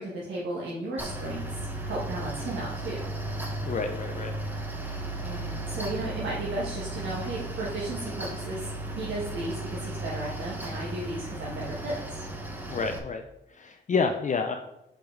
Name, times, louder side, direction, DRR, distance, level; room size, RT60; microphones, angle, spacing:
voice 1, 0.0-3.0 5.2-12.2, right 2 dB, 85° right, -5 dB, 1.5 m, -35 dB
Mechanical fan, 1.0-13.0, right 1 dB, 10° right, 0.8 m, -35 dB
voice 2, 3.7-4.3 5.1-5.7 12.7-14.6, left 4 dB, 40° left, 5 dB, 0.5 m, -30 dB
5.3 x 5.2 x 4.5 m, 0.89 s
wide cardioid pair, 160°, 19 cm